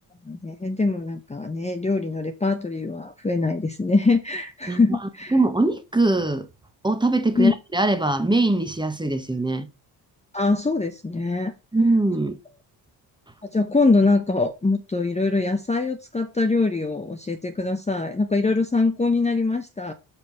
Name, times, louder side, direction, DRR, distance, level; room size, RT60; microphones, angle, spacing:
voice 1, 0.2-5.4 7.3-7.5 10.3-11.5 13.4-19.9, left 3 dB, 15° left, 0.9 m, -23 dB
voice 2, 4.7-5.0 5.3-6.5 6.8-9.7 11.7-12.4, right 2 dB, 10° right, 1.2 m, -22 dB
5.2 x 4.5 x 5.8 m
supercardioid pair, 60°, 48 cm